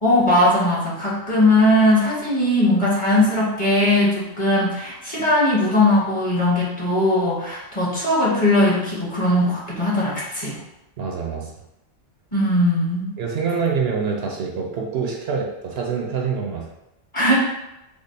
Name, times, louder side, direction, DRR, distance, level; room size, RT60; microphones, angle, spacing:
voice 1, 0.0-10.6 12.3-13.1 17.1-17.3, left 1 dB, 30° left, -7 dB, 1.0 m, -19 dB
voice 2, 11.0-11.5 13.2-16.7, right 5 dB, 65° right, -1 dB, 0.8 m, -25 dB
3.7 x 2.0 x 3.9 m, 0.91 s
omnidirectional pair, 1.2 m